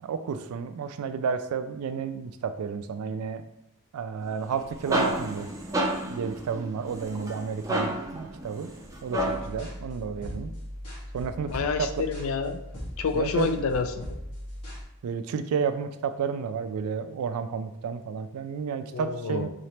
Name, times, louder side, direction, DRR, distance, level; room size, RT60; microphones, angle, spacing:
voice 1, 0.0-3.4 3.9-5.5 6.1-8.7 9.0-10.5 11.1-11.9 13.1-13.5 15.0-19.5, right 6 dB, 80° right, 11 dB, 0.3 m, -31 dB
sound 1, 4.4-9.6, right 1 dB, 15° right, 0.4 m, -31 dB
sound 2, 9.1-14.8, equal, 85° left, 1.4 m, -39 dB
voice 2, 11.5-12.6 13.0-13.9 18.9-19.5, left 5 dB, 65° left, 8 dB, 0.4 m, -28 dB
3.9 x 2.9 x 3.2 m, 0.86 s
head